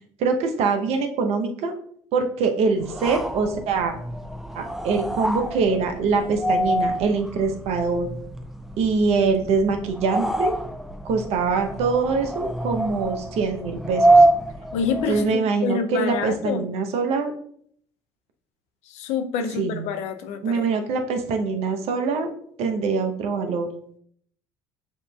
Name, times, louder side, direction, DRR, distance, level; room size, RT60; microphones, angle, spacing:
voice 1, 0.2-1.7 2.1-3.9 4.5-8.1 8.8-10.5 11.0-14.2 14.8-17.4 19.5-19.9 20.4-22.3 22.6-23.7, right 4 dB, 60° right, 6 dB, 0.7 m, -24 dB
sound 1, 2.8-15.4, right 1 dB, ahead, 0.4 m, -25 dB
voice 2, 14.7-16.6 18.9-20.6, left 6 dB, 70° left, 7 dB, 0.5 m, -27 dB
7.0 x 2.6 x 2.2 m, 0.63 s
hypercardioid pair, 65°, 12 cm